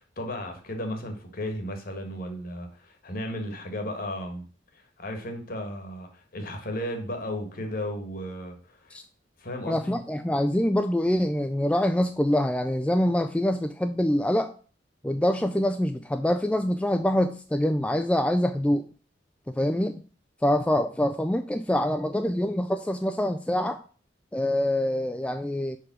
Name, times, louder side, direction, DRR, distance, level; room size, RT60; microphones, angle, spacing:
voice 1, 0.2-4.4 4.7-9.0 9.4-10.0, left 1 dB, 55° left, 5 dB, 1.5 m, -34 dB
voice 2, 9.7-14.5 15.0-18.9 19.5-20.0 20.4-23.8 24.3-25.8, left 1 dB, 5° left, 7 dB, 0.3 m, -25 dB
4.9 x 4.9 x 6.0 m, 0.40 s
head